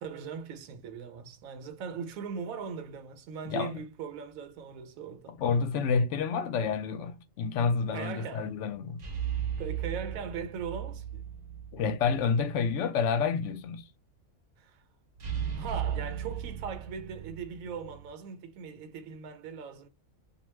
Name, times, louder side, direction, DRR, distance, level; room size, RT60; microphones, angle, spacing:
voice 1, 0.0-5.4 7.9-8.5 9.6-11.3 14.6-14.8 15.5-19.9, right 6 dB, 80° right, 1.0 m, -40 dB
voice 2, 3.5-3.8 5.3-9.0 11.7-13.9, left 5 dB, 70° left, 0.8 m, -29 dB
sound 1, 9.0-12.3 12.6-12.7 15.2-18.1, right 9 dB, 50° right, 0.5 m, -36 dB
2.3 x 2.2 x 3.1 m
omnidirectional pair, 1.4 m